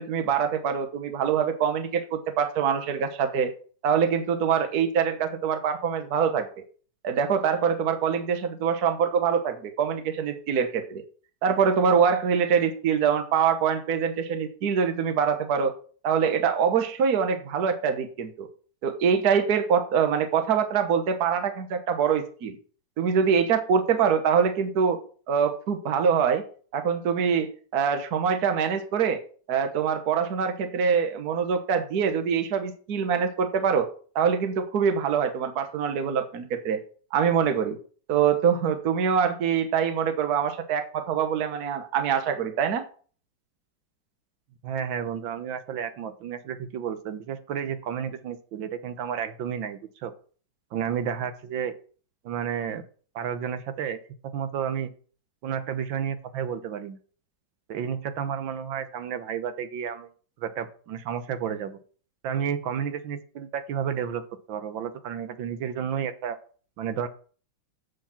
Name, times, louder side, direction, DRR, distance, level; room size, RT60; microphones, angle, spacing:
voice 1, 0.0-3.5 3.8-6.5 7.0-11.0 11.4-15.7 16.0-18.5 18.8-22.6 23.0-25.0 25.3-26.4 26.7-29.2 29.5-33.9 34.1-36.8 37.1-37.8 38.1-42.8, right 7 dB, 55° right, 7 dB, 1.5 m, -24 dB
voice 2, 44.6-50.1 50.7-51.7 52.2-52.8 53.1-54.0 54.2-54.9 55.4-57.0 57.7-60.1 60.4-61.8 62.2-64.2 64.5-66.4 66.8-67.1, right 8 dB, 85° right, 10 dB, 1.7 m, -31 dB
8.1 x 6.4 x 5.8 m, 0.42 s
omnidirectional pair, 2.1 m